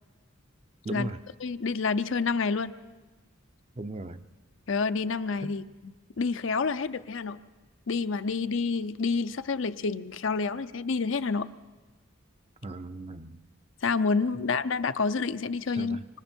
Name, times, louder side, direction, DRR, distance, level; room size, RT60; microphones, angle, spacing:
voice 1, 0.8-1.2 3.8-4.2 5.4-5.5 12.6-13.4 15.7-16.1, right 2 dB, 30° right, 10 dB, 0.6 m, -37 dB
voice 2, 1.4-2.7 4.7-5.6 6.2-7.4 7.9-11.5 13.8-16.0, left 4 dB, 65° left, 11 dB, 0.6 m, -28 dB
25.5 x 25.0 x 4.5 m, 1.2 s
head